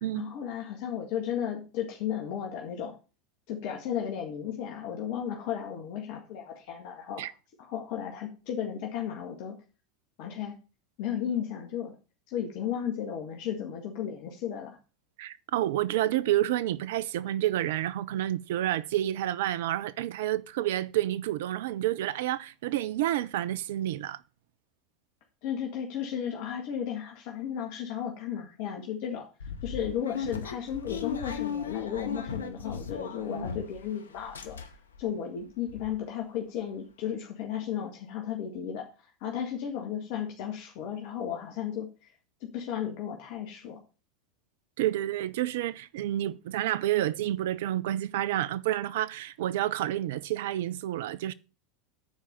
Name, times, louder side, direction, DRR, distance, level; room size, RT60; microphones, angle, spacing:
voice 1, 0.1-2.9 3.5-7.3 7.6-9.6 10.2-10.5 11.0-11.9 12.3-14.8 25.4-29.3 29.6-34.6 35.0-38.8 39.2-42.1 42.4-43.8, left 9 dB, 55° left, 1.8 m, -34 dB
voice 2, 15.2-24.2 44.8-51.3, right 13 dB, 65° right, 0.5 m, -29 dB
sound 1, 29.4-33.9 34.2-35.0 35.4-35.5 35.7-35.9, left 6 dB, 85° left, 1.1 m, -37 dB
9.0 x 4.8 x 6.7 m
hypercardioid pair, 85°, 0 cm